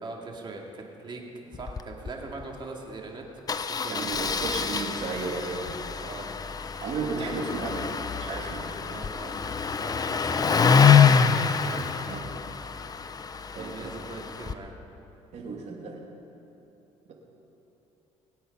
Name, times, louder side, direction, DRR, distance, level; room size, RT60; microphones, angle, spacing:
voice 1, 0.0-3.2 3.7-4.5 6.0-6.3 7.2-7.3 8.8-9.5 9.8-11.2 11.5-12.1 13.5-14.7, right 3 dB, 35° right, 0 dB, 2.3 m, -41 dB
Engine starting, 1.5-1.8 2.1-2.2 2.4-2.6 3.5-14.5, left 6 dB, 30° left, 0.6 m, -25 dB
voice 2, 3.9-5.7 6.8-7.9 8.2-8.7 12.1-12.2 13.5-14.0 15.3-16.0, right 4 dB, 60° right, -1 dB, 2.7 m, -34 dB
21.5 x 8.5 x 5.4 m, 3.0 s
cardioid pair, 95°, 13 cm